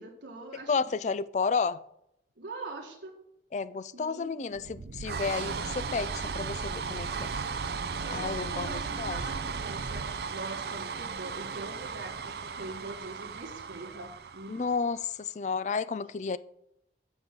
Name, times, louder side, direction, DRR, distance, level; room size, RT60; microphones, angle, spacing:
voice 1, 0.0-0.9 2.4-3.2 3.9-4.9 8.0-10.0 10.3-14.9, right 2 dB, 90° right, 1.5 m, -43 dB
voice 2, 0.7-1.8 3.5-7.3 8.1-9.2 14.5-16.4, left 5 dB, 40° left, 0.3 m, -31 dB
sound 1, 4.5-15.0, right 5 dB, 60° right, 0.5 m, -36 dB
8.0 x 5.3 x 7.4 m
head